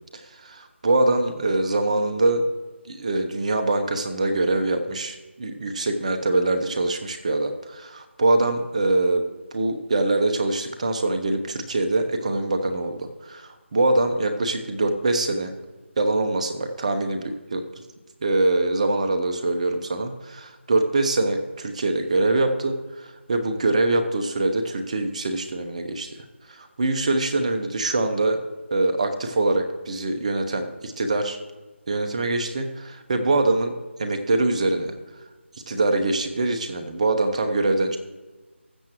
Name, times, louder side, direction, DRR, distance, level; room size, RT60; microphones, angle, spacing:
voice 1, 0.1-2.4 2.8-9.2 9.5-15.5 16.0-17.6 18.2-26.2 26.5-28.4 28.7-31.4 31.9-33.7 34.0-35.0 35.7-38.0, right 2 dB, 35° right, 6 dB, 1.0 m, -24 dB
19.5 x 7.4 x 3.1 m, 1.2 s
figure-of-eight pair, 165°, 7 cm